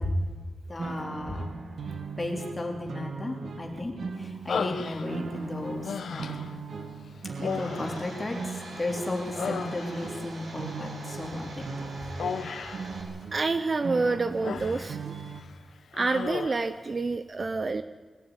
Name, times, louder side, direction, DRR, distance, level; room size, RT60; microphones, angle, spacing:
voice 1, 0.7-1.5 2.2-3.9 4.2-5.8 6.1-6.4 7.4-8.4 8.7-11.9, left 2 dB, 20° left, 1 dB, 3.4 m, -34 dB
sound 1, 0.8-15.4, right 5 dB, 65° right, 1.9 m, -39 dB
Human voice, 4.5-5.4 5.8-6.6 7.4-8.8 9.1-10.2 12.2-12.9 13.9-14.9 15.3-15.5 15.9-16.7, left 6 dB, 85° left, 1.1 m, -35 dB
Domestic sounds home sounds, 7.3-13.0, right 2 dB, 90° right, 5.3 m, -44 dB
voice 2, 13.3-15.3 15.9-17.8, right 3 dB, 30° right, 12 dB, 0.6 m, -28 dB
21.0 x 15.0 x 9.7 m, 1.4 s
wide cardioid pair, 175°, 0 cm